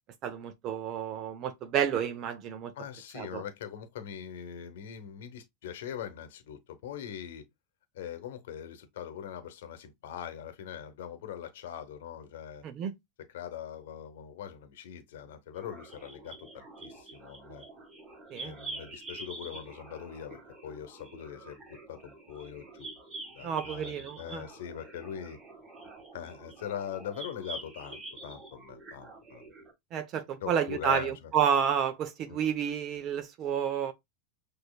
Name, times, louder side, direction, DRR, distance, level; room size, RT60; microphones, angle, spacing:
voice 1, 0.2-2.7 3.1-3.4 12.6-12.9 18.3-18.5 23.4-24.4 29.9-33.9, right 8 dB, 45° right, 0.7 m, -30 dB
voice 2, 2.7-7.4 7.9-12.6 13.3-17.6 18.4-21.6 21.9-22.9 23.3-25.4 26.1-29.4 30.4-31.1 32.3-32.4, left 9 dB, 80° left, 0.8 m, -42 dB
sound 1, 15.5-29.7, right 2 dB, 25° right, 1.8 m, -46 dB
6.2 x 2.7 x 2.3 m
hypercardioid pair, 115°, 0 cm